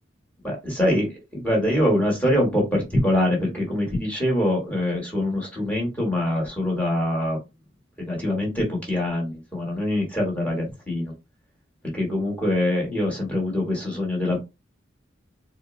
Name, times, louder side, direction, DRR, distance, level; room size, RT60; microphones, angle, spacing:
voice 1, 0.4-7.4 8.0-11.1 11.9-14.4, left 1 dB, 10° left, -2 dB, 1.3 m, -24 dB
3.9 x 2.0 x 2.5 m, 0.24 s
head